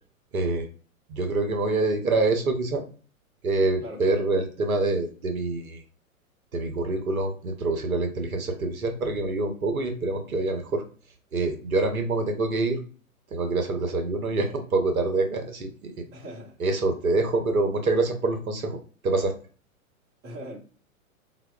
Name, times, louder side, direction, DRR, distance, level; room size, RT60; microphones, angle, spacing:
voice 1, 0.3-0.7 1.1-2.8 3.4-5.8 6.5-10.8 11.3-12.8 13.3-15.9 16.6-18.8 19.0-19.3, right 3 dB, 75° right, 0.8 m, -26 dB
voice 2, 3.8-4.3 16.1-16.6 20.2-20.6, right 1 dB, 25° right, 0.9 m, -39 dB
4.4 x 2.0 x 2.2 m
figure-of-eight pair, 110°, 43 cm